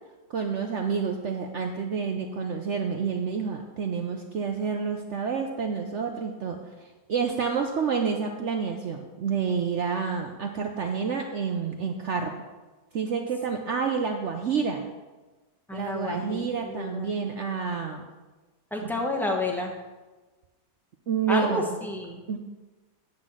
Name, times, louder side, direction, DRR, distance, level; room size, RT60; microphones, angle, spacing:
voice 1, 0.3-6.6 7.1-12.4 12.9-14.9 15.7-18.1 18.8-18.9 21.1-21.6 22.3-22.4, right 6 dB, 65° right, 4 dB, 0.7 m, -29 dB
voice 2, 15.7-17.1 18.7-19.7 21.3-22.2, left 2 dB, ahead, -1 dB, 0.8 m, -30 dB
9.7 x 4.0 x 7.4 m, 1.2 s
omnidirectional pair, 1.8 m